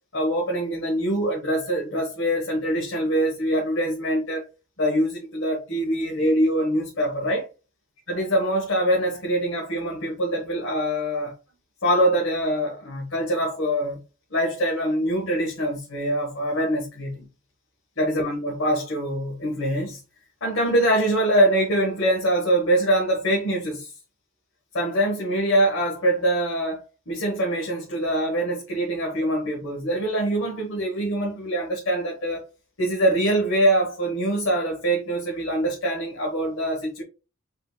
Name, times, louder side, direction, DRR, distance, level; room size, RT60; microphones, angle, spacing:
voice 1, 0.1-4.5 4.8-7.5 8.1-11.3 11.8-14.0 14.3-17.3 18.0-20.0 20.4-23.9 24.7-32.5 32.8-37.0, right 1 dB, 70° left, 1.2 m, -24 dB
5.7 x 3.9 x 2.3 m
head